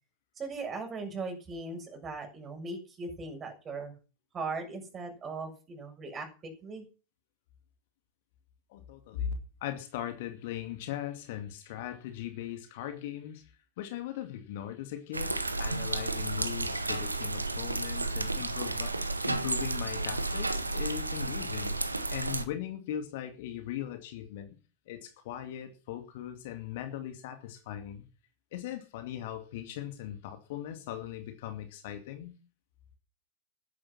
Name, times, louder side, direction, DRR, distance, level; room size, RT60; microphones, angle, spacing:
voice 1, 0.4-4.0 4.3-6.9, right 3 dB, 25° right, 6.9 m, -39 dB
voice 2, 8.7-9.3 9.6-18.9 19.3-21.7 22.1-24.6 24.9-28.1 28.5-32.3, left 11 dB, 50° left, 2.4 m, -39 dB
sound 1, 15.1-22.4, right 2 dB, 80° right, 1.5 m, -32 dB
14.0 x 11.5 x 5.8 m
figure-of-eight pair, 90°, 0 cm